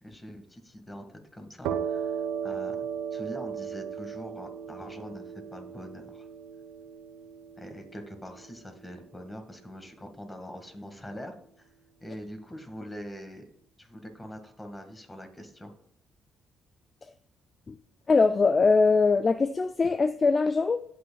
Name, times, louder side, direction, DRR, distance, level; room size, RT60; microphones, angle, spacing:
voice 1, 0.0-6.3 7.6-11.7 12.0-13.4 13.8-15.7, equal, 15° left, 6 dB, 1.8 m, -43 dB
sound 1, 1.6-9.1, right 7 dB, 85° right, 0.9 m, -36 dB
voice 2, 18.1-20.8, left 4 dB, 40° left, 12 dB, 0.3 m, -22 dB
16.0 x 5.9 x 2.3 m, 0.66 s
supercardioid pair, 60°, 0 cm